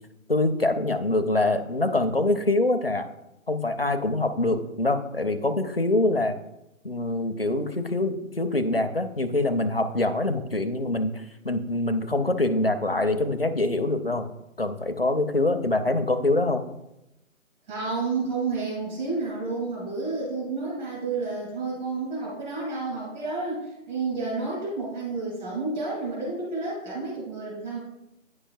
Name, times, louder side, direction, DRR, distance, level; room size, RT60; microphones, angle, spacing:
voice 1, 0.3-3.1 3.5-6.4 6.8-14.3 14.6-16.6, left 2 dB, 45° left, 9 dB, 0.4 m, -24 dB
voice 2, 17.7-27.8, right 3 dB, 30° right, -6 dB, 2.6 m, -30 dB
9.6 x 5.5 x 2.4 m, 0.88 s
figure-of-eight pair, 155°, 42 cm